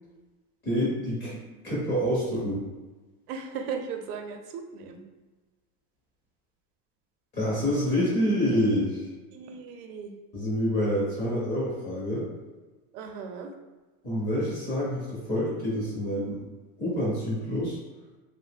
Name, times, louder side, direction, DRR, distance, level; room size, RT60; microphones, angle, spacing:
voice 1, 0.6-2.6 7.3-9.1 10.3-12.3 14.0-16.4 16.8-17.8, equal, 25° left, -7 dB, 0.7 m, -27 dB
voice 2, 3.3-5.0 9.3-10.1 12.9-13.5, right 6 dB, 80° right, 5 dB, 0.6 m, -37 dB
2.6 x 2.1 x 3.3 m, 1.2 s
supercardioid pair, 175°, 45 cm